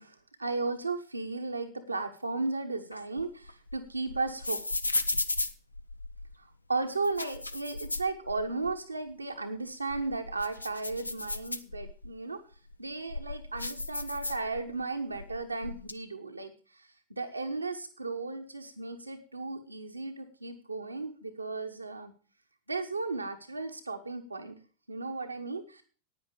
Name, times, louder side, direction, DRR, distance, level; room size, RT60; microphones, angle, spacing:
voice 1, 0.0-4.6 6.4-12.4 12.8-22.1 22.7-24.6 24.9-25.8, right 3 dB, 80° right, 5 dB, 1.1 m, -35 dB
sound 1, 2.9-6.3 6.9-8.8 9.1-9.2 9.7-12.1 12.7-14.8 15.1-15.9, left 2 dB, 80° left, 0.7 m, -35 dB
10.0 x 9.4 x 6.7 m, 0.40 s
figure-of-eight pair, 90°, 0 cm